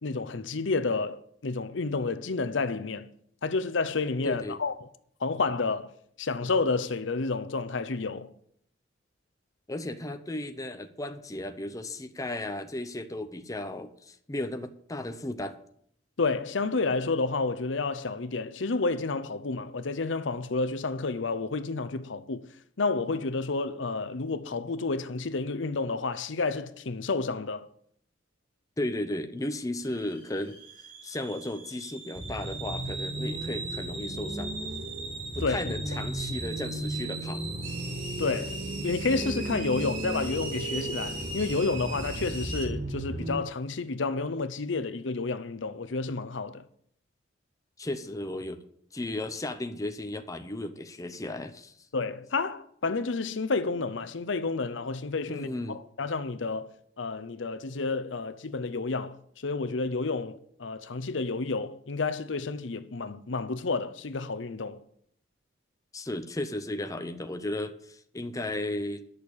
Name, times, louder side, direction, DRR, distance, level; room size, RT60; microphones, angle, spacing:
voice 1, 0.0-3.1 3.4-4.9 5.2-5.9 6.2-8.3 16.2-22.5 22.8-27.7 35.4-35.7 38.2-46.6 51.9-56.7 57.0-64.8, left 3 dB, 75° left, 0.7 m, -30 dB
voice 2, 4.2-4.6 9.7-15.6 28.8-30.6 31.0-34.6 35.3-37.4 47.8-48.6 48.9-51.7 55.3-55.8 65.9-69.1, left 1 dB, 20° left, 0.7 m, -35 dB
sound 1, 29.8-42.7, right 3 dB, 90° right, 3.3 m, -40 dB
sound 2, 32.2-43.4, right 1 dB, 30° right, 0.7 m, -36 dB
11.0 x 6.5 x 8.3 m
head